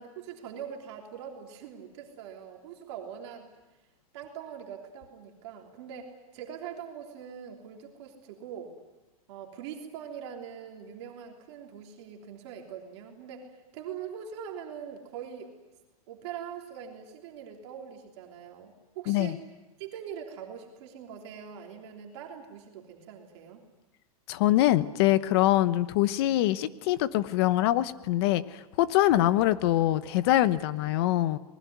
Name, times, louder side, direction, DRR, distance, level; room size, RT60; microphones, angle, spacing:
voice 1, 0.0-3.5 4.1-8.7 9.3-15.5 16.1-19.4 19.8-23.6, right 8 dB, 45° right, 1 dB, 3.4 m, -42 dB
voice 2, 19.1-19.4 24.3-31.4, left 14 dB, 40° left, 14 dB, 1.0 m, -24 dB
26.5 x 20.5 x 9.5 m, 1.1 s
supercardioid pair, 165°, 19 cm